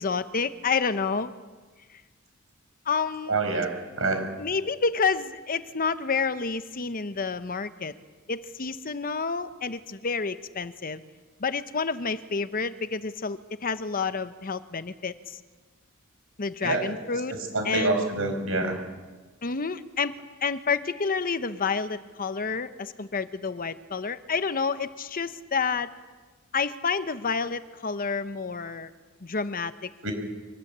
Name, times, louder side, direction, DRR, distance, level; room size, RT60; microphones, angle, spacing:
voice 1, 0.0-1.3 2.9-3.3 4.4-7.9 8.3-11.0 11.4-15.4 16.4-17.3 17.6-18.1 19.4-20.1 20.4-25.9 26.5-28.9 29.2-29.9, left 5 dB, 40° left, 12 dB, 0.9 m, -29 dB
voice 2, 3.3-4.3 16.6-17.0 17.5-18.8 30.0-30.1, right 3 dB, 70° right, 6 dB, 5.4 m, -26 dB
24.0 x 20.0 x 8.8 m, 1.3 s
head